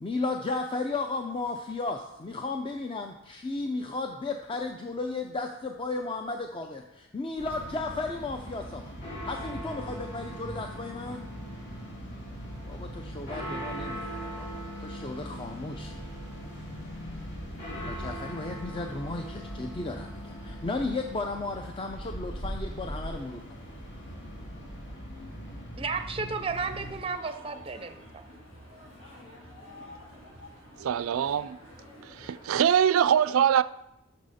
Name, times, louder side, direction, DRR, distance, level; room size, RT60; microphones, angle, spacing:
voice 1, 0.0-8.9 9.2-11.2 12.7-15.9 17.7-23.4, left 3 dB, 25° left, 0.5 m, -34 dB
sound 1, 7.4-27.0, equal, 55° left, 2.9 m, -39 dB
voice 2, 25.8-28.0, right 4 dB, 25° right, 0.5 m, -33 dB
sound 2, 26.4-32.6, left 1 dB, 75° left, 2.9 m, -49 dB
voice 3, 30.8-31.6 32.0-33.6, right 9 dB, 75° right, 0.3 m, -23 dB
11.5 x 6.4 x 4.1 m
head